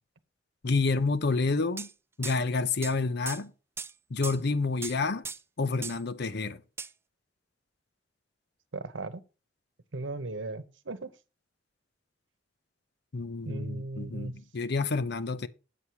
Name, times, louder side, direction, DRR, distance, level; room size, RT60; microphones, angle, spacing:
voice 1, 0.6-1.9 2.2-3.5 4.1-5.2 5.6-6.6 13.1-15.5, left 3 dB, 60° left, 0.7 m, -29 dB
sound 1, 1.8-1.9 2.2-2.4 2.8-2.9 3.3-3.4 3.8-3.9 4.2-4.4 4.8-5.0 5.2-5.4 5.8-6.0 6.8-6.9, right 5 dB, 15° right, 0.4 m, -38 dB
voice 2, 8.7-9.2 9.9-11.1 13.4-14.3, right 2 dB, 90° right, 1.0 m, -37 dB
8.4 x 7.0 x 4.7 m
head